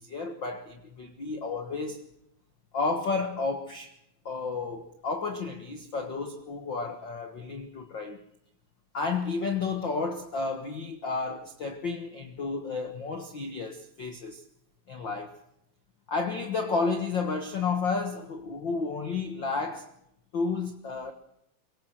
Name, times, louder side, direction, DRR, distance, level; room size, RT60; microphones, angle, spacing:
voice 1, 0.0-2.0 2.7-3.9 4.2-8.2 8.9-14.4 14.9-15.4 16.1-19.9 20.3-21.1, left 4 dB, 75° left, 1.0 m, -32 dB
23.5 x 17.5 x 7.5 m
omnidirectional pair, 4.6 m